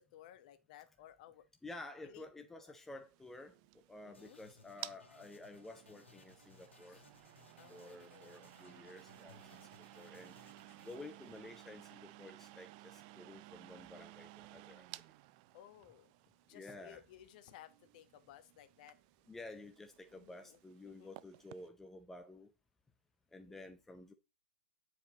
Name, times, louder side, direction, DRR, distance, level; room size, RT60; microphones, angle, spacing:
voice 1, 0.0-1.4 2.0-2.8 4.0-4.4 6.9-7.0 7.6-8.5 15.5-16.1 16.5-19.0 20.1-20.6 20.8-21.1 23.4-23.7, left 11 dB, 40° left, 1.0 m, -58 dB
voice 2, 1.6-3.5 3.9-7.0 7.7-9.6 9.9-10.4 10.8-14.9 16.5-17.0 19.3-22.5 23.3-24.1, left 2 dB, 5° left, 0.7 m, -52 dB
sound 1, 3.0-21.7, right 19 dB, 35° right, 0.3 m, -56 dB
sound 2, 4.1-12.2, left 4 dB, 80° left, 2.1 m, -64 dB
9.0 x 4.9 x 4.0 m
figure-of-eight pair, 115°, 6 cm